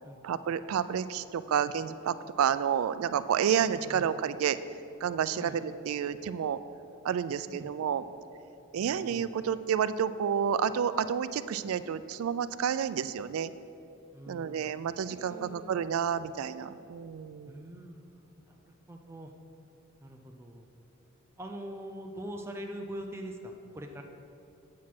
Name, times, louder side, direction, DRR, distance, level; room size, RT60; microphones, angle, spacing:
voice 1, 0.2-4.6 5.0-6.6 7.0-8.0 8.7-13.5 14.3-17.6, right 8 dB, 85° right, 14 dB, 0.3 m, -30 dB
voice 2, 3.7-4.1 5.3-5.6 7.5-7.7 8.8-9.3 14.1-14.7 15.3-16.0 17.5-19.3 20.0-20.7 21.4-24.0, equal, 10° right, 2 dB, 0.4 m, -43 dB
8.4 x 6.5 x 5.9 m, 2.7 s
head